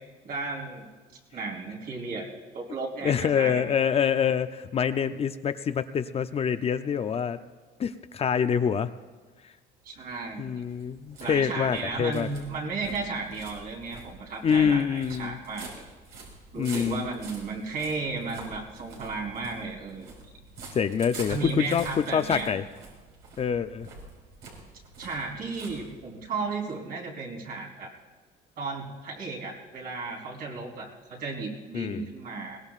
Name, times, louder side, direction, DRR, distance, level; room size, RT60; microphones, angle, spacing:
voice 1, 0.2-0.9 1.3-2.3 2.5-3.7 9.8-10.6 11.2-15.7 16.5-20.1 21.3-22.5 25.0-27.9 28.6-32.6, right 3 dB, 60° right, -2 dB, 3.7 m, -34 dB
voice 2, 3.0-7.4 7.8-8.9 10.4-12.3 14.4-15.4 16.6-17.1 20.7-21.9 22.1-22.6 23.4-23.9 31.7-32.1, left 7 dB, 35° left, 10 dB, 0.5 m, -26 dB
sound 1, 9.8-26.3, right 3 dB, 90° right, 4.6 m, -46 dB
21.5 x 18.5 x 2.5 m, 1.3 s
cardioid pair, 110°, 17 cm